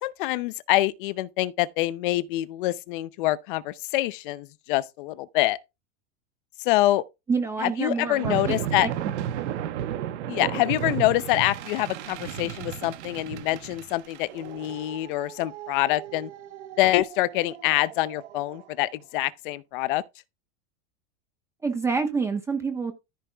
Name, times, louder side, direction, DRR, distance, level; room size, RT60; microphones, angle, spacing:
voice 1, 0.0-5.6 6.6-7.0 7.6-8.9 10.3-16.3 16.8-20.0, left 17 dB, 50° left, 0.6 m, -25 dB
voice 2, 7.3-8.3 8.8-8.9 21.6-22.9, right 4 dB, 10° right, 0.5 m, -27 dB
sound 1, 8.1-18.6, right 10 dB, 85° right, 1.3 m, -34 dB
14.0 x 4.6 x 3.4 m
supercardioid pair, 175°, 33 cm